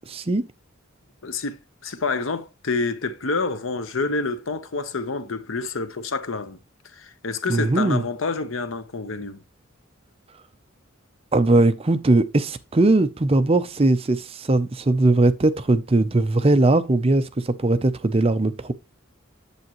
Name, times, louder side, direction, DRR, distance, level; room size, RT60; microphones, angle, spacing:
voice 1, 0.1-0.5 7.5-8.0 11.3-18.7, right 2 dB, 30° right, 0.6 m, -20 dB
voice 2, 1.2-6.6 6.9-9.4, left 3 dB, 75° left, 0.9 m, -28 dB
8.3 x 7.8 x 3.0 m
head